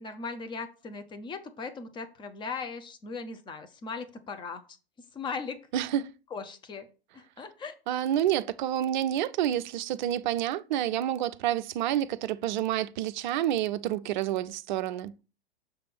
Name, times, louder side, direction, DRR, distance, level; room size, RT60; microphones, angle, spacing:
voice 1, 0.0-4.6 5.1-5.7 6.3-6.9 7.1-7.7, left 4 dB, 15° left, 0.8 m, -38 dB
voice 2, 5.7-6.1 7.9-15.1, right 12 dB, 45° right, 0.5 m, -28 dB
6.8 x 3.4 x 6.0 m
figure-of-eight pair, 105°, 32 cm